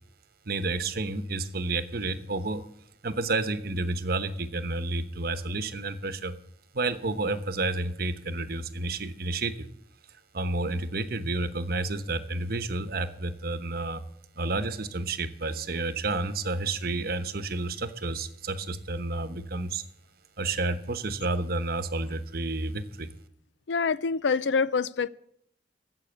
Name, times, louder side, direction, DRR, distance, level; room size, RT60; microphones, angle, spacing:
voice 1, 0.5-2.6 3.0-6.4 6.7-9.7 10.3-14.0 14.3-19.8 20.4-23.1, right 2 dB, 55° right, 1.0 m, -30 dB
voice 2, 23.7-25.1, left 5 dB, 80° left, 0.5 m, -26 dB
14.0 x 8.0 x 8.0 m
head